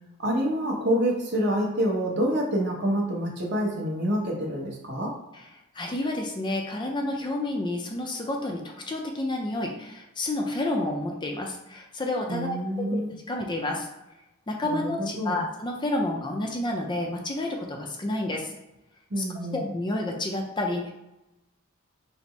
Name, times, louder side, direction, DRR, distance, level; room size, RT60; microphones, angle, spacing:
voice 1, 0.2-5.1 12.3-13.1 14.6-15.4 19.1-19.6, equal, 55° right, -1 dB, 1.0 m, -27 dB
voice 2, 5.7-13.9 14.5-18.5 19.2-19.3 19.5-20.9, left 1 dB, 20° left, 1 dB, 0.4 m, -30 dB
4.1 x 2.0 x 4.5 m, 0.95 s
head